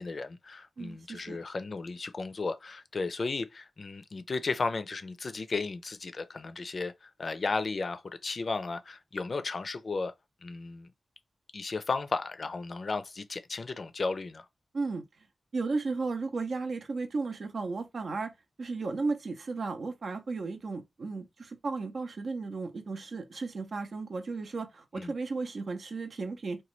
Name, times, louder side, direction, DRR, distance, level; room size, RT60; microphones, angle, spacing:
voice 1, 0.0-10.1 10.4-10.9 11.5-14.5 25.0-25.1, left 3 dB, 60° left, 0.4 m, -34 dB
voice 2, 0.8-1.4 14.7-15.0 15.5-18.3 18.6-26.6, right 3 dB, 75° right, 0.6 m, -34 dB
3.0 x 2.2 x 3.0 m
cardioid pair, 55°, 0 cm